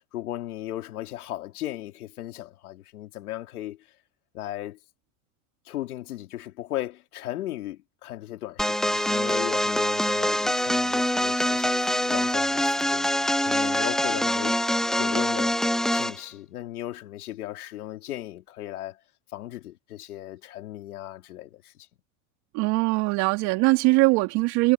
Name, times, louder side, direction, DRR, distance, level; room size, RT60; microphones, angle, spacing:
voice 1, 0.1-3.9 4.3-4.8 5.7-14.6 15.0-15.6 15.9-19.0 19.3-21.9, left 14 dB, 85° left, 4.3 m, -36 dB
sound 1, 8.6-16.2, left 1 dB, ahead, 0.6 m, -24 dB
voice 2, 22.5-24.7, right 25 dB, 60° right, 3.1 m, -21 dB
supercardioid pair, 105°, 43 cm